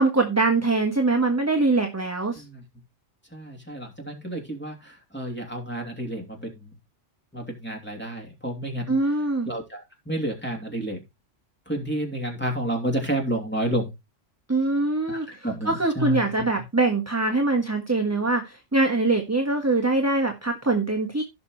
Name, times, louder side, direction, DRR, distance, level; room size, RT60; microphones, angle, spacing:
voice 1, 0.0-2.4 8.9-9.5 14.5-21.2, right 3 dB, 15° right, 3 dB, 1.3 m, -23 dB
voice 2, 3.3-6.7 7.3-9.0 9.5-11.0 11.7-13.9 15.1-16.3, right 1 dB, 10° left, 1 dB, 2.9 m, -30 dB
16.0 x 6.1 x 3.1 m, 0.23 s
omnidirectional pair, 1.3 m